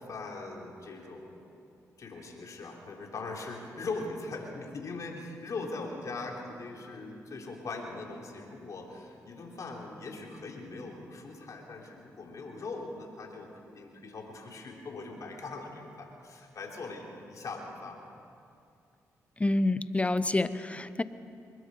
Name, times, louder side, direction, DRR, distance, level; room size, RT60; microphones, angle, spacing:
voice 1, 0.0-1.5 2.0-18.0, left 3 dB, 60° left, 1 dB, 3.4 m, -41 dB
voice 2, 19.4-21.0, left 2 dB, 20° left, 14 dB, 0.9 m, -27 dB
22.5 x 21.0 x 5.5 m, 2.5 s
supercardioid pair, 55°, 6 cm